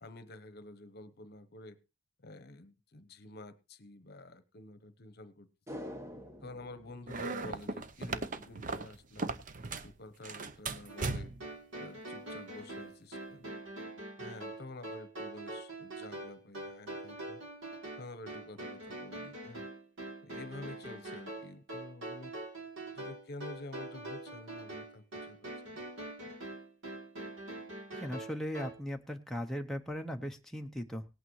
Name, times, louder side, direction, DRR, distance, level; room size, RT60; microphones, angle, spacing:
voice 1, 0.0-1.8 2.2-5.5 6.4-9.3 9.8-11.3 11.8-13.5 14.2-17.4 18.0-19.7 20.2-22.3 22.9-25.8 26.2-26.3, left 2 dB, 55° left, 11 dB, 1.0 m, -49 dB
sound 1, 5.7-8.1 8.4-8.5, equal, 15° right, 1.2 m, -47 dB
sound 2, 7.1-9.9 10.2-11.5, right 3 dB, 45° right, 0.7 m, -38 dB
sound 3, 10.9-28.7, right 2 dB, 90° right, 3.2 m, -44 dB
voice 2, 27.9-31.1, equal, ahead, 2 dB, 0.7 m, -38 dB
18.0 x 8.7 x 3.1 m, 0.28 s
head